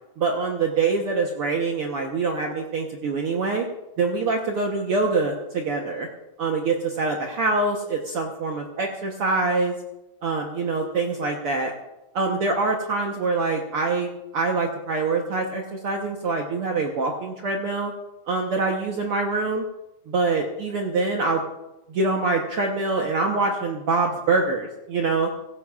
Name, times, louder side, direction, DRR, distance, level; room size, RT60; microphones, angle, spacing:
voice 1, 0.2-3.6 4.0-6.1 6.4-9.8 10.2-11.7 12.1-17.9 18.3-19.6 20.1-21.4 21.9-25.3, right 3 dB, 75° right, 1 dB, 1.3 m, -25 dB
16.5 x 16.0 x 2.4 m, 0.97 s
omnidirectional pair, 3.9 m